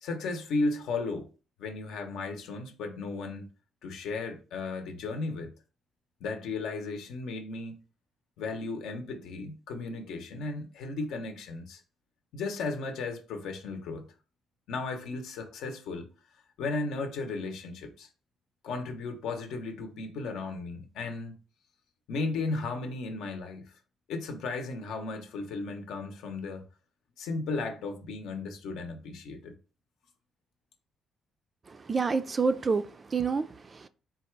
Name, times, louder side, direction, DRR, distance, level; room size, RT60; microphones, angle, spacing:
voice 1, 0.0-1.3 1.6-3.5 3.8-5.5 6.2-7.8 8.4-11.8 12.3-14.1 14.7-16.1 16.6-18.1 18.6-21.3 22.1-23.7 24.1-26.6 27.2-29.5, left 3 dB, 80° left, 0.8 m, -35 dB
voice 2, 31.7-33.9, right 4 dB, 25° right, 0.3 m, -29 dB
4.1 x 2.3 x 4.5 m
cardioid pair, 135°, 0 cm